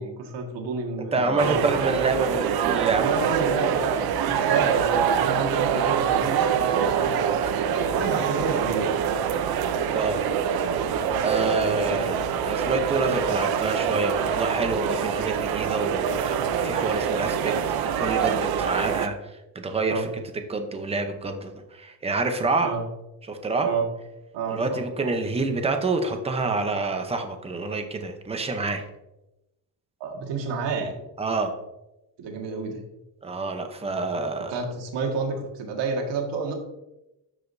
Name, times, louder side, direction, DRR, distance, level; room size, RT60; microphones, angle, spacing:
voice 1, 0.0-1.6 1.9-2.0 2.9-9.0 11.4-12.0 19.9-20.1 22.6-22.8 23.6-23.9 24.3-24.8 30.0-31.0 32.2-32.8 34.5-36.5, right 4 dB, 85° right, 2 dB, 1.7 m, -30 dB
voice 2, 1.1-3.0 8.1-8.3 9.9-10.3 11.2-12.2 12.4-17.5 17.8-20.1 20.3-22.8 23.3-23.7 24.5-28.8 31.2-31.5 33.2-34.6, right 3 dB, 15° right, 5 dB, 0.7 m, -27 dB
sound 1, 1.4-19.1, right 7 dB, 60° right, 0.6 m, -25 dB
13.0 x 5.0 x 2.6 m, 0.94 s
cardioid pair, 160°, 42 cm